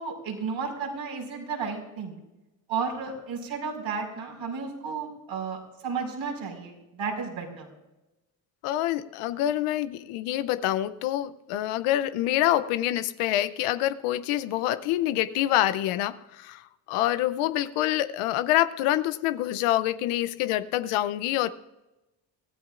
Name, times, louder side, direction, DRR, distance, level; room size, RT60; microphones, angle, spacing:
voice 1, 0.0-2.2 2.7-7.7, right 5 dB, 70° right, 0 dB, 5.2 m, -33 dB
voice 2, 8.6-21.5, left 13 dB, 85° left, 13 dB, 0.7 m, -26 dB
24.5 x 15.0 x 2.5 m, 0.99 s
supercardioid pair, 70°, 49 cm